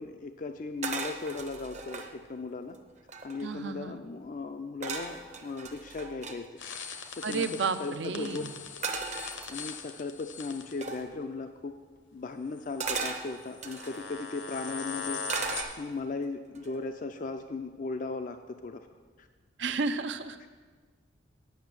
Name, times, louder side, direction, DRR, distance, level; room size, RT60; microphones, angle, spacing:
voice 1, 0.0-2.8 3.2-6.5 6.9-8.4 8.8-8.9 9.5-11.7 12.1-15.2 15.8-18.8 19.2-19.3, left 3 dB, 45° left, 7 dB, 0.4 m, -37 dB
sound 1, 0.8-2.1 2.7-2.8 3.0-3.6 4.8-6.4 8.8-9.9 10.8-11.1 12.8-14.0 15.3-16.1 16.5-16.9, right 4 dB, 35° right, 0.7 m, -37 dB
voice 2, 3.4-4.0 7.2-8.5 19.6-20.4, right 4 dB, 70° right, 10 dB, 0.5 m, -32 dB
sound 2, 6.6-10.9 12.6-12.8 13.4-15.6, left 5 dB, 70° left, 0.9 m, -40 dB
9.3 x 6.0 x 7.4 m, 1.5 s
head